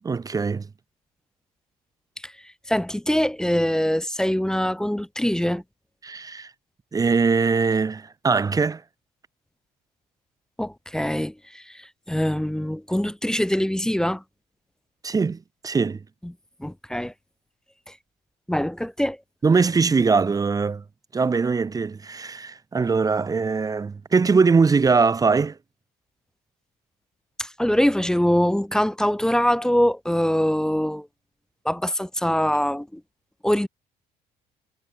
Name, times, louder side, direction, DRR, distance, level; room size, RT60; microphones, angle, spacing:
voice 1, 0.0-0.7 6.0-6.5 6.9-8.8 15.0-16.0 19.4-20.8 21.1-25.6, right 4 dB, 20° right, 0.6 m, -21 dB
voice 2, 2.7-5.6 10.6-11.6 12.1-14.2 16.2-16.3 16.6-17.1 18.5-19.2 27.4-31.1 31.6-33.0 33.4-33.7, equal, 5° left, 0.9 m, -23 dB
cardioid pair, 110°, 17 cm